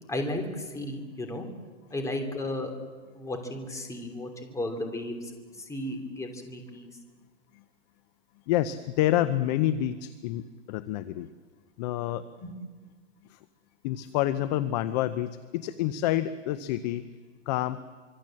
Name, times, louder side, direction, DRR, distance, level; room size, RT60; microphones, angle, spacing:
voice 1, 0.1-1.5 1.9-2.7 3.1-5.3 5.7-6.9 12.4-12.5, left 1 dB, 10° left, 5 dB, 2.9 m, -34 dB
voice 2, 8.5-11.3 11.8-12.2 13.3-13.4 13.8-17.1 17.5-17.8, left 13 dB, 35° left, 13 dB, 0.8 m, -28 dB
25.5 x 24.5 x 7.6 m, 1.5 s
hypercardioid pair, 150°, 37 cm